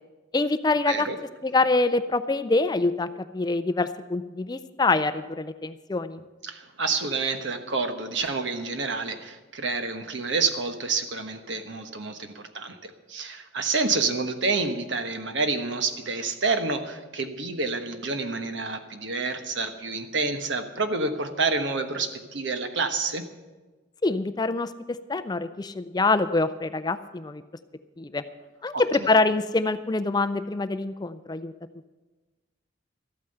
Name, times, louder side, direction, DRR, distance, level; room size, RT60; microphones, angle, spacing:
voice 1, 0.3-1.1 1.4-6.2 24.0-27.4 28.0-28.2 28.6-31.5, left 3 dB, 20° left, 12 dB, 0.4 m, -25 dB
voice 2, 0.9-1.2 6.4-23.2 28.7-28.8, right 4 dB, 65° right, 7 dB, 1.2 m, -28 dB
13.5 x 9.0 x 7.8 m, 1.2 s
head